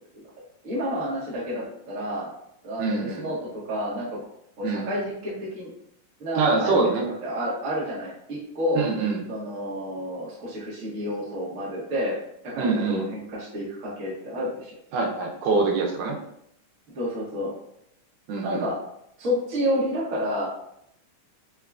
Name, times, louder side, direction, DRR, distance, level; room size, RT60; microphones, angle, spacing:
voice 1, 0.6-2.3 2.6-4.2 4.6-5.7 6.2-6.9 7.2-8.9 9.3-12.1 12.4-14.8 16.9-17.5 18.4-18.8 19.2-20.5, equal, 65° right, -7 dB, 0.8 m, -29 dB
voice 2, 2.8-3.3 4.6-4.9 6.4-7.1 8.8-9.2 12.6-13.0 14.9-16.2 18.3-18.6, right 4 dB, 85° right, 0 dB, 2.2 m, -24 dB
5.5 x 2.3 x 2.4 m, 0.75 s
omnidirectional pair, 3.7 m